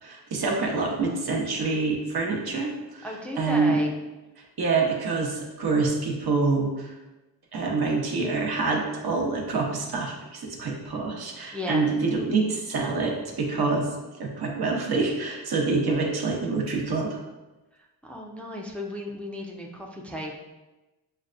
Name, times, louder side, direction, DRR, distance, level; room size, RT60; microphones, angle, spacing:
voice 1, 0.0-3.8 4.6-6.9 7.5-13.9 14.2-17.2, right 3 dB, 55° right, 0 dB, 0.9 m, -26 dB
voice 2, 3.0-3.9 11.5-11.9 18.0-20.4, equal, 5° left, -1 dB, 0.4 m, -34 dB
6.5 x 2.2 x 2.5 m, 1.1 s
cardioid pair, 95°, 44 cm